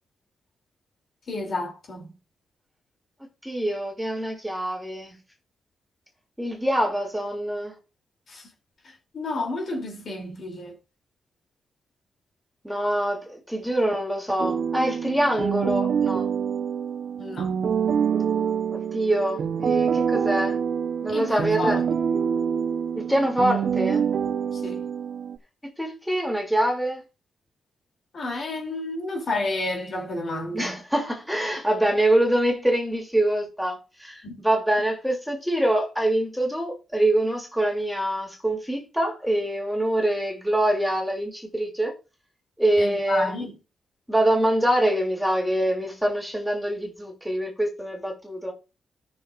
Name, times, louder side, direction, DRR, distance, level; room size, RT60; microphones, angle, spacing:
voice 1, 1.3-2.1 9.1-10.7 17.2-17.5 21.1-21.8 24.6-24.9 28.1-30.8 34.2-34.4 42.8-43.5, left 2 dB, 55° left, 3.0 m, -30 dB
voice 2, 3.4-5.2 6.4-7.8 12.6-16.3 18.7-20.6 21.0-21.9 23.0-24.1 25.8-27.0 30.5-41.9 42.6-43.3 44.1-48.5, right 1 dB, ahead, 2.8 m, -25 dB
sound 1, 14.4-25.4, right 7 dB, 65° right, 0.9 m, -26 dB
14.0 x 6.5 x 2.5 m
cardioid pair, 85°, 0 cm